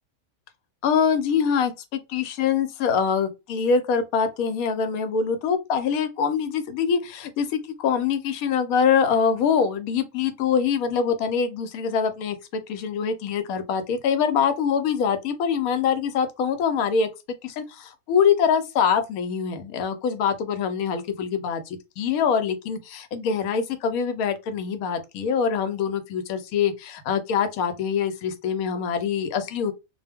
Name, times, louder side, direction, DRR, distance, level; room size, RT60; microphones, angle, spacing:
voice 1, 0.8-17.1 17.4-29.7, left 6 dB, 85° left, 1.0 m, -24 dB
2.3 x 2.1 x 3.4 m
omnidirectional pair, 1.5 m